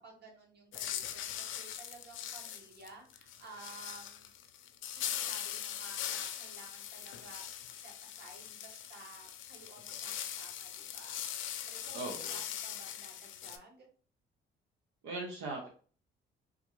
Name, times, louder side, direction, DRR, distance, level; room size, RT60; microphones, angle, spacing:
voice 1, 0.0-4.3 4.9-7.4 7.7-13.9, right 3 dB, 55° right, 1 dB, 1.4 m, -54 dB
sound 1, 0.7-13.6, left 10 dB, 80° left, 0.4 m, -41 dB
voice 2, 11.9-12.4 15.0-15.7, right 2 dB, 90° right, 0 dB, 0.8 m, -39 dB
3.6 x 2.4 x 3.1 m, 0.42 s
cardioid pair, 90°, 20 cm